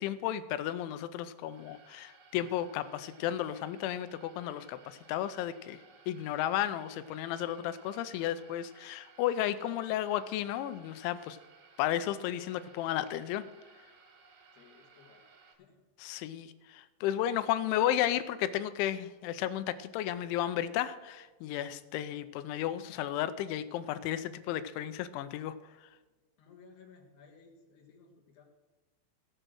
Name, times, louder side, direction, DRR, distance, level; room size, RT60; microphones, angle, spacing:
voice 1, 0.0-5.8 6.1-11.4 11.8-13.4 16.0-25.6, left 12 dB, 85° left, 13 dB, 3.0 m, -33 dB
sound 1, 1.4-15.5, right 4 dB, 70° right, 3.7 m, -60 dB
voice 2, 14.5-15.9 26.4-28.4, left 5 dB, 65° left, 1 dB, 3.2 m, -58 dB
16.0 x 7.7 x 6.3 m, 1.3 s
omnidirectional pair, 5.4 m